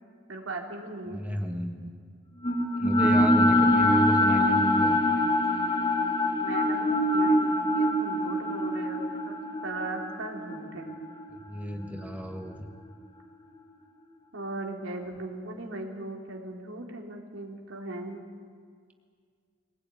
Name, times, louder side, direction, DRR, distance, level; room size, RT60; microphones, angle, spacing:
voice 1, 0.3-1.2 6.4-9.4 9.6-10.9 14.3-18.2, right 2 dB, 90° right, 0 dB, 3.4 m, -38 dB
voice 2, 1.1-2.0 2.8-5.1 11.4-12.7, equal, 10° right, 2 dB, 1.7 m, -32 dB
sound 1, 2.4-12.6, left 1 dB, 25° left, 2.7 m, -25 dB
22.5 x 17.5 x 9.3 m, 2.1 s
head